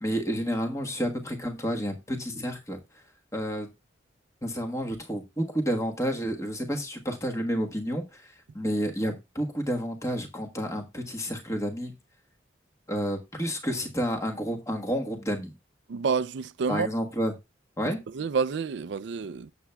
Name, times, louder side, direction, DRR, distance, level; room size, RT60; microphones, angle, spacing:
voice 1, 0.0-2.8 3.3-3.7 4.4-11.9 12.9-15.5 16.7-17.3 17.8-18.0, equal, 15° left, 1.3 m, -30 dB
voice 2, 15.9-16.9 18.1-19.5, right 5 dB, 65° right, 0.4 m, -28 dB
17.0 x 7.0 x 2.3 m
head